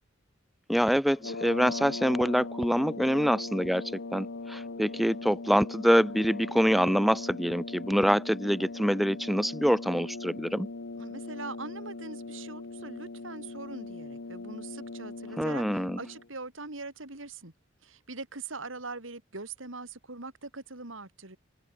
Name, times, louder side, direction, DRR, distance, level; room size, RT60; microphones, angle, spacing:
voice 1, 0.7-10.7 15.4-16.0, equal, ahead, 0.5 m, -25 dB
sound 1, 1.1-16.3, left 3 dB, 70° left, 1.0 m, -40 dB
voice 2, 11.0-17.5 17.8-21.4, right 3 dB, 75° right, 3.8 m, -42 dB
open air
head